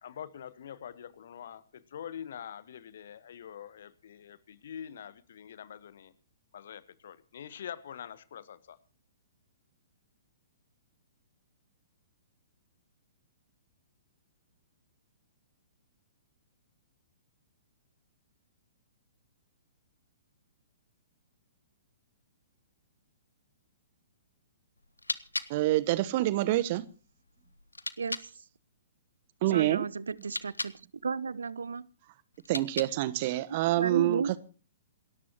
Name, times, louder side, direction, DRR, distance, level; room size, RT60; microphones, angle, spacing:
voice 1, 0.0-6.1 6.5-8.8, left 9 dB, 55° left, 1.2 m, -45 dB
sound 1, 24.8-28.3 30.1-30.8 32.3-33.2, left 2 dB, 80° left, 1.0 m, -40 dB
voice 2, 25.5-26.8 29.4-29.8 32.5-34.4, right 16 dB, 40° right, 1.1 m, -27 dB
voice 3, 29.5-30.7 31.0-31.9 33.8-34.3, right 5 dB, 65° right, 0.7 m, -33 dB
28.0 x 13.5 x 3.0 m
figure-of-eight pair, 115°, 0 cm